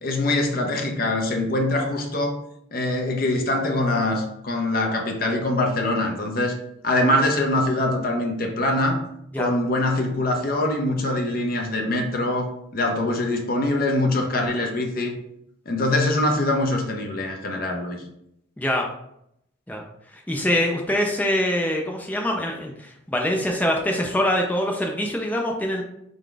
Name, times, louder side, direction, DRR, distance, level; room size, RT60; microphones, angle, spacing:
voice 1, 0.0-2.4 2.7-6.6 6.8-9.0 9.4-15.2 15.7-18.0, left 1 dB, 45° left, 2 dB, 0.7 m, -23 dB
voice 2, 20.3-25.8, left 1 dB, 10° left, 0 dB, 0.4 m, -24 dB
3.9 x 3.6 x 3.3 m, 0.77 s
head